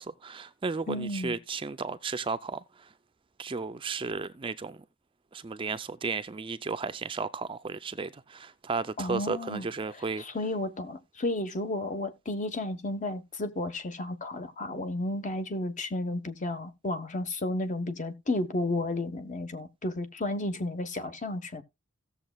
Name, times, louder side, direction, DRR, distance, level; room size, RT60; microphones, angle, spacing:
voice 1, 0.0-2.9 3.4-4.8 5.3-10.2, right 4 dB, 25° right, 0.4 m, -34 dB
voice 2, 0.9-1.4 9.0-9.7 10.2-21.6, left 2 dB, 40° left, 1.1 m, -32 dB
17.0 x 7.1 x 2.3 m
head